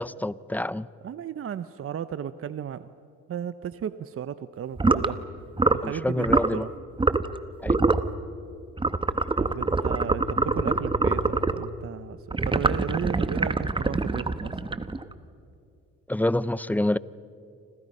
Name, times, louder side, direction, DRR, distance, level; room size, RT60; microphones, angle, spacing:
voice 1, 0.0-0.9 5.8-6.6 7.6-7.8 16.1-17.0, left 1 dB, 5° left, 0.5 m, -27 dB
voice 2, 1.0-2.9 3.3-5.2 5.7-6.7 9.4-14.6, right 9 dB, 45° right, 0.7 m, -34 dB
sound 1, 4.8-5.1 5.6-5.9 6.2-6.5 7.0-7.4 7.7-8.1 8.8-11.7 12.3-15.1, right 3 dB, 15° right, 1.0 m, -24 dB
sound 2, 10.0-12.5, left 2 dB, 65° left, 1.5 m, -42 dB
29.5 x 26.0 x 5.5 m
cardioid pair, 90°, 30 cm